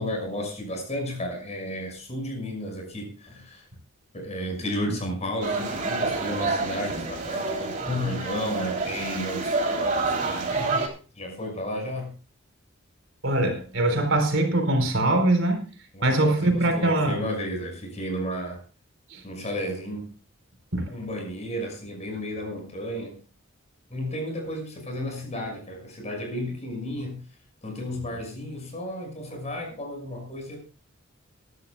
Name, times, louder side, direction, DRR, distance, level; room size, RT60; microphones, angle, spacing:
voice 1, 0.0-3.7 4.1-10.6 11.1-12.2 15.9-18.6 19.2-20.1 20.9-23.2 23.9-27.3 27.6-30.6, equal, 35° left, 3 dB, 6.1 m, -33 dB
sound 1, 5.4-10.9, right 3 dB, 40° right, 3.3 m, -28 dB
voice 2, 13.2-15.6 16.0-17.2 19.1-19.2 20.7-20.9, right 2 dB, 65° right, 5 dB, 4.3 m, -22 dB
23.0 x 11.5 x 2.3 m, 0.36 s
head